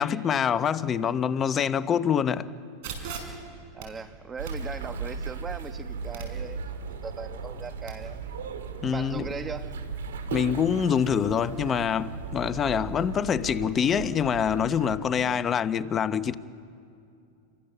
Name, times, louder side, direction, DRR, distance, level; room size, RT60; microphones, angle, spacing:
voice 1, 0.0-2.5 8.8-9.2 10.3-16.3, left 7 dB, 25° left, 0.9 m, -25 dB
sound 1, 2.8-7.9, right 5 dB, 60° right, 5.8 m, -43 dB
voice 2, 3.7-6.6 7.0-8.2 8.9-9.8 12.8-12.9 15.2-15.4, right 5 dB, 20° right, 1.3 m, -39 dB
sound 2, 4.4-15.0, right 4 dB, 85° right, 2.6 m, -37 dB
29.0 x 24.0 x 6.9 m
supercardioid pair, 125°, 0 cm